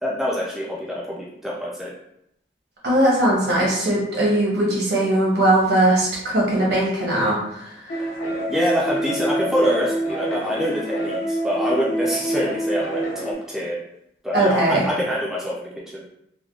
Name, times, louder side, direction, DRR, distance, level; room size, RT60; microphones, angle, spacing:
voice 1, 0.0-1.9 8.5-13.8 14.2-16.0, equal, ahead, -5 dB, 0.4 m, -25 dB
voice 2, 2.8-7.7 14.3-14.8, right 1 dB, 70° right, -4 dB, 1.0 m, -19 dB
sound 1, 7.9-13.3, right 1 dB, 45° left, 0.6 m, -26 dB
3.3 x 2.2 x 2.4 m, 0.77 s
head